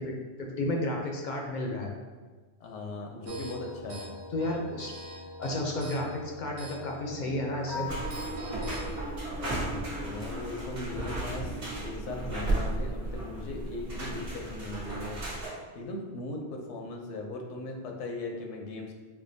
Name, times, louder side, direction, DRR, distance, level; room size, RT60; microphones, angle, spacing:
voice 1, 0.0-1.9 4.3-4.9 5.4-7.9, left 1 dB, 55° left, 0 dB, 0.5 m, -32 dB
voice 2, 2.6-4.1 9.3-15.2 15.7-19.0, left 2 dB, 85° left, 1 dB, 0.9 m, -38 dB
sound 1, 3.3-8.8, left 1 dB, 75° right, 1.0 m, -42 dB
sound 2, 7.8-15.5, right 2 dB, 60° right, 1.3 m, -34 dB
4.9 x 2.2 x 2.6 m, 1.4 s
omnidirectional pair, 1.2 m